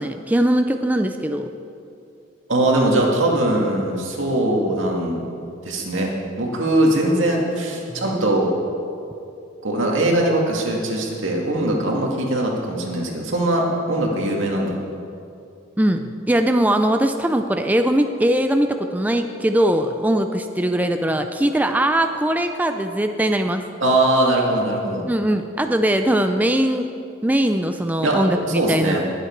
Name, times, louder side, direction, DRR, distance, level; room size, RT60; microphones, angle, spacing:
voice 1, 0.0-1.5 7.9-8.0 15.8-23.6 25.1-26.9 27.2-29.0, right 1 dB, 10° right, 6 dB, 0.4 m, -20 dB
voice 2, 2.5-5.2 5.6-8.5 9.6-14.8 23.8-25.0 28.0-28.2 28.6-29.0, right 1 dB, 80° right, -1 dB, 2.1 m, -21 dB
20.0 x 7.9 x 4.6 m, 2.6 s
head